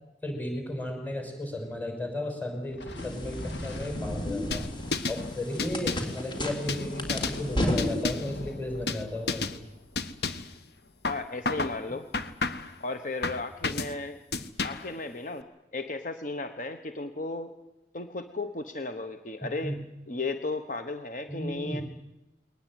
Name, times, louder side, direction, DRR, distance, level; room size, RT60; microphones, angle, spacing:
voice 1, 0.2-4.7 5.1-9.5 19.6-19.8 21.3-21.8, left 1 dB, 10° left, 3 dB, 5.9 m, -34 dB
Thunder, 2.7-11.5, left 2 dB, 80° left, 3.1 m, -44 dB
sound 1, 3.0-8.0, left 1 dB, 25° left, 3.7 m, -33 dB
sound 2, 4.5-5.2 5.6-6.1 6.7-7.4 7.8-8.4 8.9-9.0 9.3-9.6 10.0-10.5 11.0-11.8 12.1-12.7 13.2-13.9 14.3-14.9, left 3 dB, 65° left, 1.4 m, -31 dB
voice 2, 11.1-12.1 12.8-14.2 14.6-17.5 17.9-19.8 20.1-21.8, left 3 dB, 45° left, 8 dB, 1.2 m, -35 dB
22.0 x 19.5 x 9.2 m, 0.99 s
head